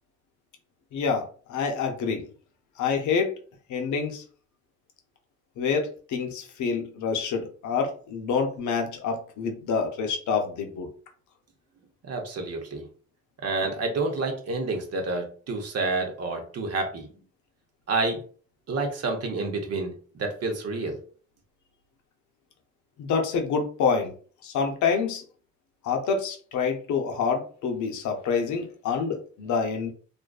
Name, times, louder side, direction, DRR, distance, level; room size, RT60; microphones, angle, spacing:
voice 1, 0.9-2.3 2.8-3.3 3.7-4.2 5.6-10.9 23.0-24.1 24.4-25.2 25.8-29.9, left 5 dB, 70° left, 4 dB, 0.6 m, -27 dB
voice 2, 12.0-12.8 13.4-17.0 17.9-18.2 18.7-20.9, right 3 dB, 55° right, 3 dB, 0.8 m, -29 dB
2.5 x 2.3 x 2.3 m, 0.42 s
cardioid pair, 90°, 30 cm